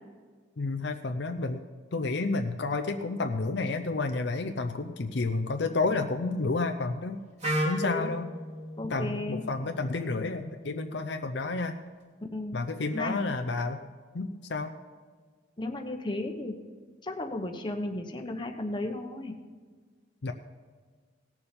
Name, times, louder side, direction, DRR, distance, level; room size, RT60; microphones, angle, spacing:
voice 1, 0.6-1.6 1.9-7.2 7.6-8.3 8.8-11.8 12.5-13.8 14.1-14.7 20.2-20.3, left 3 dB, 60° left, 6 dB, 0.6 m, -30 dB
Wind instrument woodwind instrument, 7.4-11.3, equal, 35° right, 2.8 m, -35 dB
voice 2, 8.8-9.4 12.3-12.6 12.9-13.2 15.6-16.6 17.0-19.3, left 2 dB, 25° left, 3 dB, 1.0 m, -34 dB
17.5 x 7.0 x 5.3 m, 1.5 s
head